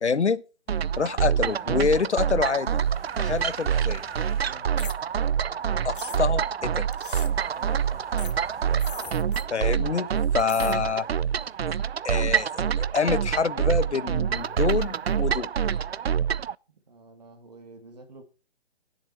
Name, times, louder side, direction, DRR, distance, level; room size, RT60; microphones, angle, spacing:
voice 1, 0.0-0.4 1.0-2.8 3.2-4.0 5.8-6.8 9.5-10.1 10.3-11.1 12.0-15.5, left 5 dB, 85° left, 1.3 m, -26 dB
sound 1, 0.7-11.6, left 6 dB, 10° left, 2.0 m, -54 dB
sound 2, 0.7-16.5, right 8 dB, 65° right, 0.5 m, -26 dB
voice 2, 4.3-4.7 7.3-8.1 16.7-18.2, right 3 dB, 40° right, 2.2 m, -49 dB
sound 3, 4.8-5.0 5.9-6.2 6.9-7.3 8.2-8.3 8.7-9.5 10.4-10.8, left 6 dB, 50° left, 0.7 m, -39 dB
17.0 x 7.2 x 4.6 m
hypercardioid pair, 170°, 33 cm